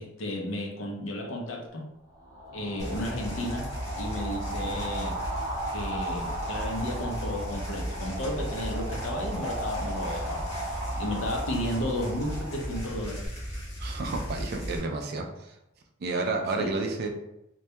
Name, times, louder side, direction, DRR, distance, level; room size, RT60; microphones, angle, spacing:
voice 1, 0.0-1.9 2.5-3.7 4.0-5.2 5.7-10.5 11.0-13.3 16.6-16.8, left 1 dB, 70° left, 0 dB, 0.6 m, -33 dB
sound 1, 2.1-13.3, right 1 dB, 20° right, 0.7 m, -36 dB
sound 2, 2.8-14.8, equal, 35° left, 0.8 m, -36 dB
voice 2, 13.8-15.6 16.0-17.1, right 3 dB, 55° right, 3 dB, 0.4 m, -31 dB
2.2 x 2.1 x 2.8 m, 0.87 s
head